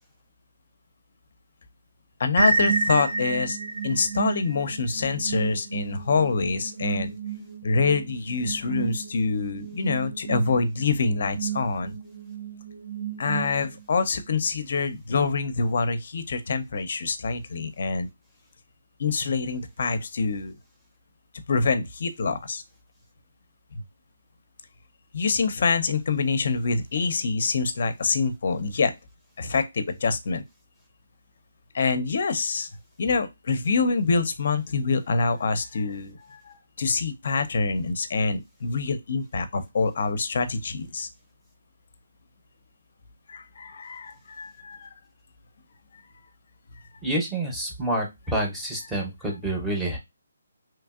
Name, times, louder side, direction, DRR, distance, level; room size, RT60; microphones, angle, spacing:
voice 1, 2.2-3.6 3.8-7.1 7.6-12.0 13.2-18.1 19.0-20.5 21.5-22.6 23.7-23.8 25.1-28.9 29.4-30.4 31.7-32.7 33.0-41.1 43.3-44.9, left 4 dB, 55° left, 0.5 m, -26 dB
sound 1, 2.4-14.0, right 5 dB, 60° right, 0.6 m, -31 dB
voice 2, 47.0-50.0, right 1 dB, 5° right, 0.7 m, -28 dB
2.9 x 2.5 x 2.3 m
hypercardioid pair, 160°, 0 cm